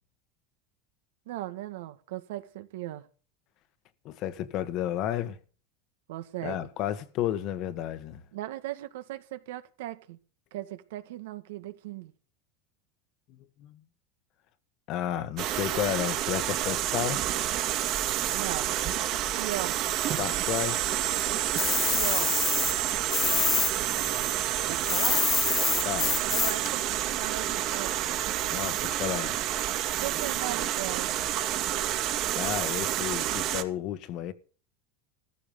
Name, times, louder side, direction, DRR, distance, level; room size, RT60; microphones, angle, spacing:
voice 1, 1.2-3.1 6.1-6.7 8.3-10.2 10.5-12.1 18.3-18.8 19.4-19.8 21.9-22.3 24.7-25.3 26.0-28.0 30.0-31.1, right 15 dB, 80° right, 1.8 m, -37 dB
voice 2, 4.0-5.4 6.4-8.2 13.3-13.8 14.9-17.2 20.2-20.8 25.8-26.2 28.5-29.3 32.3-34.3, left 11 dB, 55° left, 1.7 m, -32 dB
sound 1, 15.4-33.6, right 12 dB, 50° right, 2.4 m, -29 dB
sound 2, 21.6-23.7 24.0-26.7, left 6 dB, 25° left, 0.8 m, -27 dB
14.5 x 13.5 x 5.3 m
supercardioid pair, 120°, 0 cm